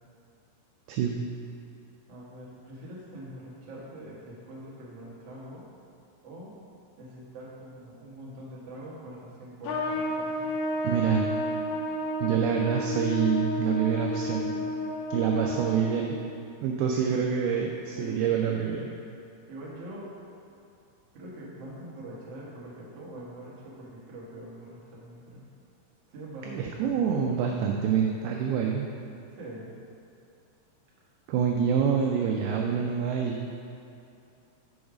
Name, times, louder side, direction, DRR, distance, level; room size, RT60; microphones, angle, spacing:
voice 1, 0.9-1.3 10.8-11.2 12.2-14.6 15.1-16.2 16.6-18.9 26.5-28.9 31.3-33.6, right 7 dB, 85° right, 1 dB, 2.2 m, -26 dB
voice 2, 2.1-5.7 6.2-6.6 7.0-10.5 16.9-17.3 17.9-18.8 19.5-20.1 21.1-25.4 26.1-27.3 27.7-27.8 29.3-29.8, right 1 dB, 60° right, -6 dB, 1.6 m, -44 dB
Trumpet, 9.6-16.2, left 1 dB, 85° left, 2.3 m, -31 dB
7.0 x 5.2 x 4.9 m, 2.7 s
omnidirectional pair, 5.0 m